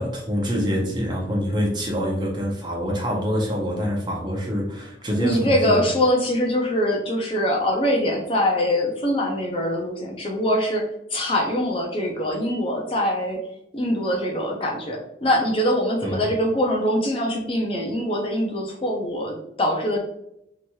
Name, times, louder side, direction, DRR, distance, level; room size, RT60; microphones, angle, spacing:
voice 1, 0.0-5.9 16.0-16.2, equal, 25° right, -1 dB, 0.6 m, -25 dB
voice 2, 5.1-10.8 11.1-13.4 13.7-20.0, equal, 30° left, 0 dB, 0.4 m, -23 dB
3.0 x 2.8 x 2.2 m, 0.81 s
head